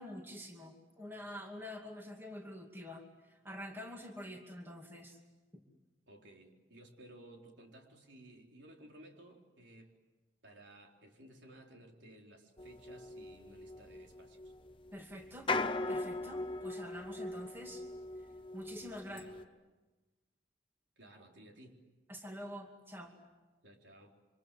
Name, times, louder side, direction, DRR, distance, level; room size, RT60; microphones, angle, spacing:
voice 1, 0.0-5.2 5.5-5.6 14.9-15.5 15.9-17.9 18.2-18.3 18.5-19.2 22.1-23.1, equal, 10° right, 2 dB, 2.4 m, -47 dB
voice 2, 6.1-9.9 10.4-14.5 19.1-19.4 21.0-21.8 23.6-24.1, right 1 dB, 80° right, 1 dB, 4.1 m, -57 dB
sound 1, 12.6-19.4, left 2 dB, 30° left, 0.8 m, -40 dB
28.5 x 25.5 x 7.7 m, 1.2 s
head